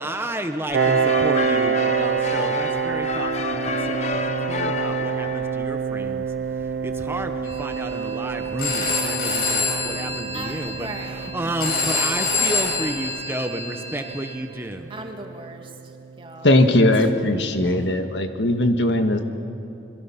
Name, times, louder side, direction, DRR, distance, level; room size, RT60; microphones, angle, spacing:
voice 1, 0.0-6.2 6.8-14.9 17.6-17.9 19.1-19.2, right 1 dB, 15° right, 6 dB, 0.9 m, -32 dB
sound 1, 0.7-13.3, left 4 dB, 40° left, 0.8 m, -33 dB
Piano, 0.7-16.1, right 6 dB, 80° right, 0.5 m, -27 dB
Telephone, 7.4-14.3, left 3 dB, 60° left, 7.1 m, -27 dB
voice 2, 10.3-11.7 12.1-12.6 14.9-16.5 16.8-16.9 17.1-17.2, right 2 dB, 30° right, 3 dB, 2.0 m, -39 dB
voice 3, 16.4-19.2, left 1 dB, 80° left, 6 dB, 1.6 m, -19 dB
27.0 x 22.5 x 5.8 m, 2.8 s
head